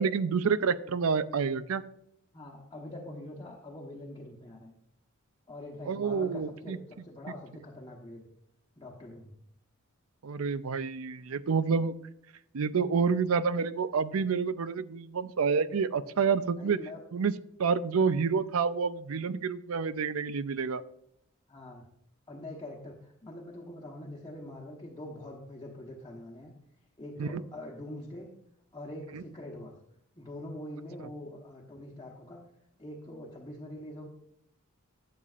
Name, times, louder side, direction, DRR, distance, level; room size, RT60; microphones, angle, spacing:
voice 1, 0.0-1.8 5.9-6.8 10.2-11.9 12.5-16.8 17.1-17.3 17.6-20.8 27.2-27.4 29.1-29.2, right 5 dB, 75° right, 15 dB, 0.5 m, -28 dB
voice 2, 2.3-4.7 5.5-8.2 8.8-9.3 16.6-17.0 21.5-21.9 22.3-26.5 27.0-28.3 28.7-29.7 30.2-32.4 32.8-34.1, left 1 dB, 20° left, -3 dB, 1.1 m, -44 dB
12.0 x 7.4 x 2.5 m, 0.74 s
head